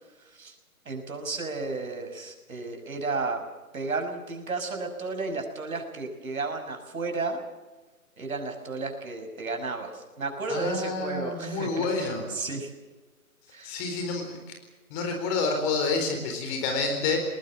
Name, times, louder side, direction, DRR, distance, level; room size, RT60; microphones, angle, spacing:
voice 1, 0.9-3.4 3.7-7.4 8.2-12.7 13.5-13.8, right 3 dB, 70° right, 5 dB, 5.9 m, -33 dB
voice 2, 10.5-12.3 13.6-14.4 14.9-17.2, left 4 dB, 20° left, 4 dB, 4.2 m, -28 dB
21.0 x 20.5 x 7.6 m, 1.2 s
figure-of-eight pair, 145°, 44 cm